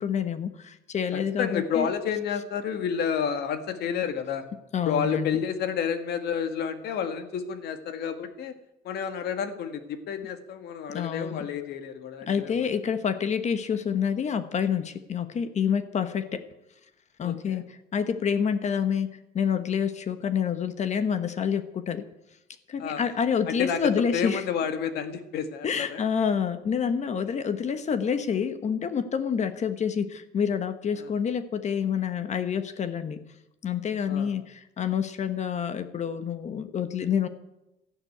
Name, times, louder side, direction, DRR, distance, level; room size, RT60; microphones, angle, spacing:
voice 1, 0.0-1.9 4.7-5.4 10.9-11.5 12.3-16.4 17.2-22.1 22.7-24.5 25.6-33.2 33.6-37.3, left 7 dB, 45° left, 11 dB, 1.2 m, -28 dB
voice 2, 1.1-4.4 4.9-8.6 8.8-12.7 17.2-17.6 22.8-23.1 23.5-26.0 31.0-31.1 34.1-34.3, left 7 dB, 75° left, 8 dB, 1.8 m, -30 dB
13.5 x 11.5 x 9.3 m, 0.91 s
cardioid pair, 110°, 17 cm